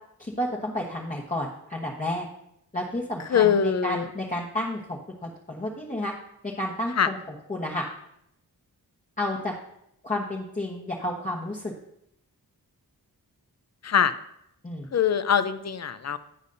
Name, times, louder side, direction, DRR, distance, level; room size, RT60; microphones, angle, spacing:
voice 1, 0.2-2.3 2.7-6.1 6.4-7.2 7.5-7.8 9.2-9.5 10.0-11.7 14.6-14.9, left 1 dB, 20° left, -3 dB, 1.2 m, -31 dB
voice 2, 3.3-4.1 7.0-7.1 13.8-14.1 14.9-16.2, left 8 dB, 45° left, 13 dB, 0.6 m, -23 dB
11.0 x 8.1 x 2.6 m, 0.76 s
wide cardioid pair, 80°, 38 cm